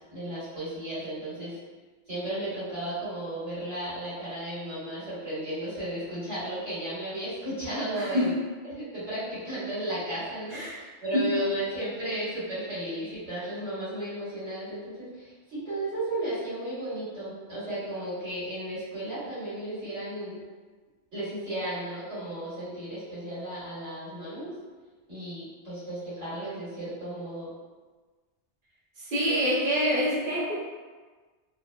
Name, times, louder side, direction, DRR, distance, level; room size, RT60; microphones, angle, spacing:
voice 1, 0.1-1.5 2.1-8.3 8.6-20.4 21.1-24.5 25.1-27.5, right 1 dB, 70° right, -12 dB, 2.0 m, -34 dB
voice 2, 7.9-8.3 10.5-10.8 11.1-11.3 29.0-30.5, equal, 50° right, -6 dB, 0.9 m, -26 dB
4.1 x 2.1 x 2.2 m, 1.4 s
omnidirectional pair, 1.2 m